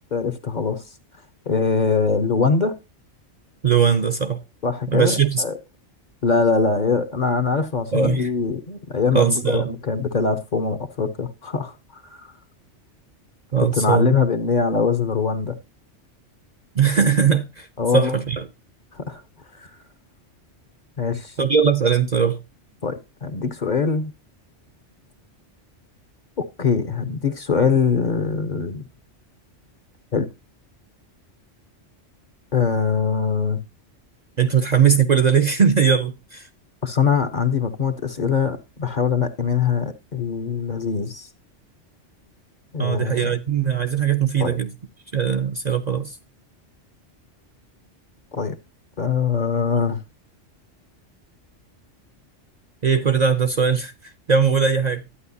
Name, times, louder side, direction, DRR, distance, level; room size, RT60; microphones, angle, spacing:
voice 1, 0.1-0.8 1.5-2.7 4.6-5.6 6.2-11.7 12.1-12.3 13.6-15.5 17.8-18.1 18.9-19.2 21.0-21.3 22.8-24.1 26.4-28.8 30.1-30.3 32.5-33.6 36.8-41.3 42.7-43.4 44.4-44.6 48.3-48.6 49.0-50.0, left 5 dB, 45° left, 0.8 m, -22 dB
voice 2, 3.6-4.4 4.9-5.4 7.9-8.3 9.1-9.7 13.5-14.1 16.7-17.7 17.9-18.4 21.4-22.4 34.4-36.5 42.8-44.7 45.1-46.2 52.8-53.9 54.3-55.0, right 6 dB, 45° right, 0.6 m, -19 dB
11.5 x 8.9 x 2.7 m
omnidirectional pair, 1.2 m